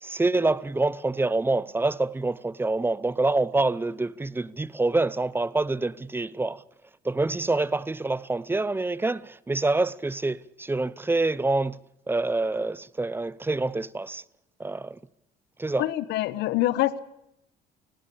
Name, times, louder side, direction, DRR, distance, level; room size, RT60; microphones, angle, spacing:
voice 1, 0.0-6.6 7.0-11.8 12.1-14.2 14.6-15.0 15.6-15.9, right 2 dB, 15° right, 0.8 m, -26 dB
voice 2, 15.8-17.0, left 15 dB, 85° left, 1.1 m, -25 dB
19.5 x 17.0 x 8.6 m
cardioid pair, 110°, 17 cm